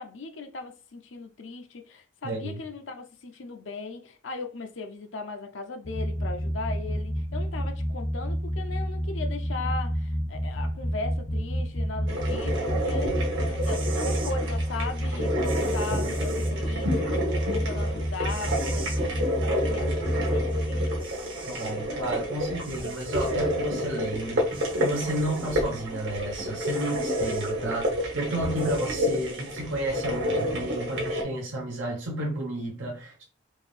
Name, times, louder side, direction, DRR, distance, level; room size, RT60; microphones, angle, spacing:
voice 1, 0.0-20.0 20.3-21.8 22.3-22.4, left 3 dB, 75° left, 0.6 m, -38 dB
voice 2, 2.2-2.6 21.6-33.2, right 1 dB, 80° right, 1.0 m, -32 dB
sound 1, 5.8-21.0, equal, 30° left, 0.6 m, -29 dB
sound 2, 12.1-31.2, equal, 65° right, 1.4 m, -29 dB
sound 3, 13.6-14.4 15.4-16.5 18.3-19.0 20.5-20.6 21.0-21.8 22.6-23.4 24.5-25.6 26.6-27.5 28.6-29.5, right 5 dB, 25° right, 0.5 m, -44 dB
4.5 x 2.7 x 3.3 m
head